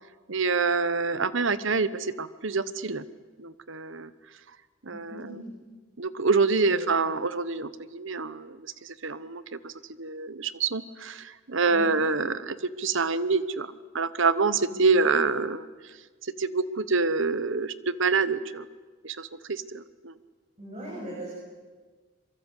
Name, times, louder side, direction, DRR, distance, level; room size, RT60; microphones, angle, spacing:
voice 1, 0.3-3.0 3.4-4.1 4.9-5.3 6.0-8.6 8.8-9.7 10.0-13.7 13.9-15.7 16.4-18.7 19.0-20.1, right 4 dB, 60° right, 15 dB, 1.1 m, -26 dB
voice 2, 4.9-5.4 6.7-6.9 11.7-11.9 14.7-14.9 20.6-21.3, equal, 30° right, -5 dB, 7.4 m, -40 dB
26.0 x 23.5 x 8.3 m, 1.4 s
head